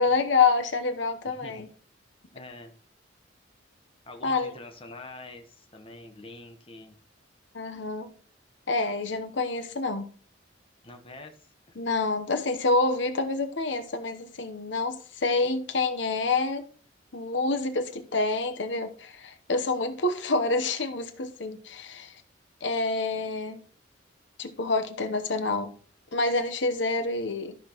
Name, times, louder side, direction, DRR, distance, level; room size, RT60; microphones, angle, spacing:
voice 1, 0.0-1.7 4.2-4.5 7.5-8.1 8.7-10.1 11.8-16.6 17.1-22.1 22.6-23.6 24.4-25.7 26.1-27.6, left 3 dB, 65° left, 0.9 m, -27 dB
voice 2, 1.2-1.6 2.3-2.7 4.1-7.0 10.8-11.4 11.7-11.8, left 2 dB, 30° left, 1.1 m, -45 dB
13.0 x 6.0 x 3.0 m
head